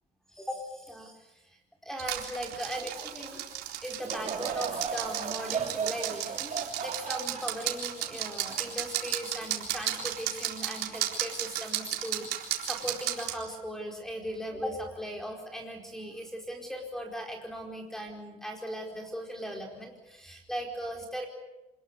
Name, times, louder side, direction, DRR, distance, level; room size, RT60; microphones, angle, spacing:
voice 1, 0.3-1.6 1.8-3.4 3.8-21.3, equal, 5° left, 3 dB, 4.7 m, -38 dB
sound 1, 2.0-13.4, right 11 dB, 75° right, 4.0 m, -34 dB
Laughter / Crowd, 4.0-9.5 10.0-10.1 10.9-11.2, right 6 dB, 45° right, 2.9 m, -36 dB
27.0 x 21.0 x 8.4 m, 0.97 s
cardioid pair, 110°, 17 cm